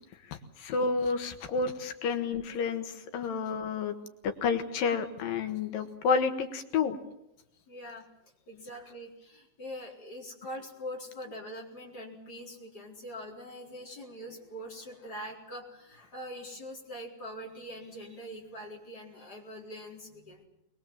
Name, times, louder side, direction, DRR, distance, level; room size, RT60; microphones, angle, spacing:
voice 1, 0.6-4.0 4.2-7.0, left 5 dB, 80° left, 7 dB, 3.3 m, -30 dB
voice 2, 7.7-8.0 8.5-20.4, equal, 25° left, -1 dB, 4.4 m, -43 dB
22.0 x 22.0 x 7.4 m, 0.82 s
omnidirectional pair, 4.0 m